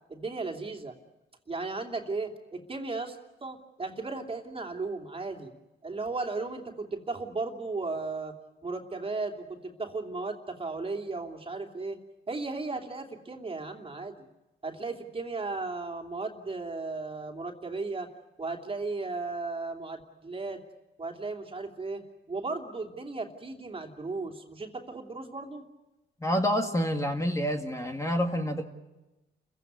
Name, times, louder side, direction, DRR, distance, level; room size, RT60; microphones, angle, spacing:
voice 1, 0.1-0.9 1.5-5.5 5.8-8.3 8.6-12.0 12.3-14.3 14.6-18.1 18.4-20.6 21.0-22.0 22.3-25.6, right 3 dB, 30° right, 3 dB, 2.9 m, -35 dB
voice 2, 26.2-28.6, equal, 15° left, 4 dB, 2.0 m, -28 dB
29.5 x 15.5 x 9.5 m, 1.1 s
cardioid pair, 90°, 20 cm